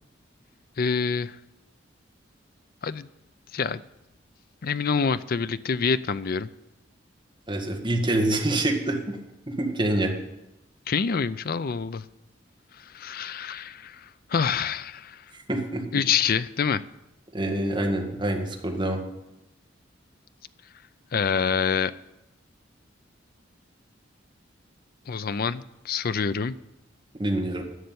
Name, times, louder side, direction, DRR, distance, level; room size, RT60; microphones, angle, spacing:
voice 1, 0.8-1.4 2.8-3.1 3.5-3.8 4.6-6.5 10.9-12.0 12.8-15.2 15.9-16.8 21.1-21.9 25.1-26.5, left 6 dB, 50° left, 15 dB, 0.5 m, -26 dB
voice 2, 7.5-9.2 9.5-10.1 15.5-16.0 17.3-19.0 27.2-27.6, right 1 dB, 25° right, 1 dB, 1.7 m, -26 dB
11.5 x 6.6 x 9.5 m, 0.89 s
head